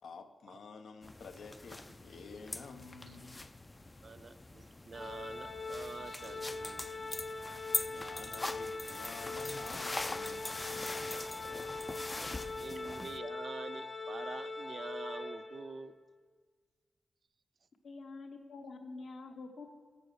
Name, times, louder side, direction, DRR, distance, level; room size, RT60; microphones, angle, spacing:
voice 1, 0.0-3.4 7.0-7.3 7.8-11.2, left 4 dB, 85° left, 7 dB, 0.6 m, -50 dB
sound 1, 1.0-13.2, left 2 dB, 20° left, 0.3 m, -42 dB
voice 2, 4.0-6.9 12.6-15.9, right 5 dB, 55° right, 12 dB, 0.4 m, -46 dB
Organ, 4.9-15.8, left 3 dB, 35° left, 1.0 m, -42 dB
voice 3, 17.8-19.7, left 3 dB, 65° left, 5 dB, 0.9 m, -46 dB
7.0 x 6.4 x 6.3 m, 1.5 s
wide cardioid pair, 100°, 0 cm